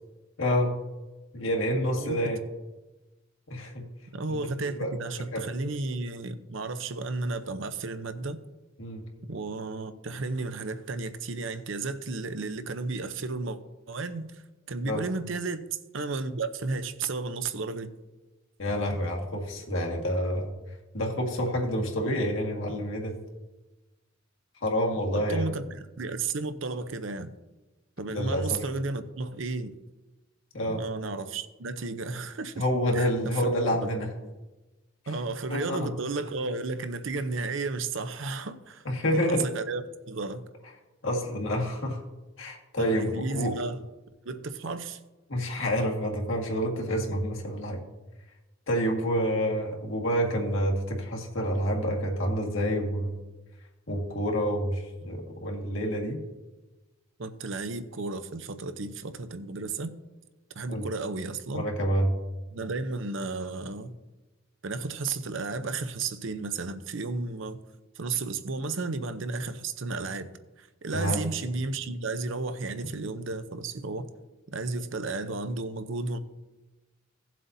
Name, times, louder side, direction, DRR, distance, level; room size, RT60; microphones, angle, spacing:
voice 1, 0.4-0.7 1.3-2.4 3.5-3.8 4.3-4.4 4.7-4.9 5.3-5.4 8.8-9.0 14.8-15.0 18.6-20.5 20.9-23.1 24.6-25.5 28.1-28.6 30.5-30.8 32.6-34.1 35.5-35.9 38.9-39.5 41.0-42.0 42.4-43.5 45.3-47.8 48.7-53.2 53.9-56.2 60.7-60.9 61.5-62.1 70.9-71.2, equal, 70° left, 0 dB, 1.9 m, -28 dB
voice 2, 4.1-8.4 9.3-13.6 13.9-14.4 14.7-15.6 15.9-17.9 25.1-27.3 28.0-29.7 30.7-32.6 32.9-33.9 35.1-38.8 39.1-40.5 42.8-43.9 44.2-45.0 57.2-59.9 60.6-61.7 62.5-64.0 64.6-67.6 68.0-70.3 70.6-74.1 74.5-76.2, right 3 dB, 70° right, 10 dB, 0.7 m, -33 dB
16.5 x 7.5 x 2.7 m, 1.1 s
head